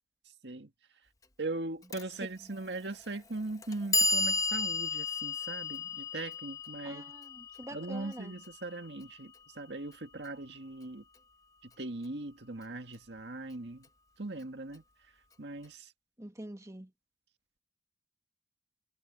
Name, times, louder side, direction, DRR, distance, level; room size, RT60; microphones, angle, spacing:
voice 1, 1.4-7.1 7.7-11.0 11.6-13.9 14.2-14.8 15.4-15.9, right 2 dB, 70° right, 1.9 m, -40 dB
Clock, 1.9-2.0 3.0-3.1 3.6-9.7, left 3 dB, 20° left, 1.0 m, -34 dB
voice 2, 6.8-8.3 16.2-16.9, right 1 dB, 20° right, 1.9 m, -45 dB
head